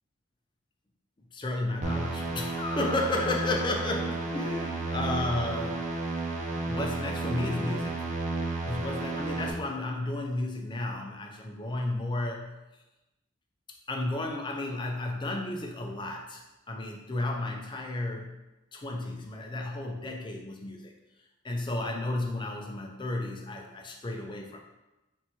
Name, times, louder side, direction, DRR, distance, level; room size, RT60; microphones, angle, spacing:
voice 1, 1.3-5.9 6.6-8.1 8.6-12.6 13.9-18.4 18.7-20.9 21.4-24.6, left 2 dB, 25° left, 1 dB, 0.5 m, -33 dB
sound 1, 1.8-9.5, right 3 dB, 35° right, 0.5 m, -32 dB
3.5 x 2.8 x 4.3 m, 1.0 s
head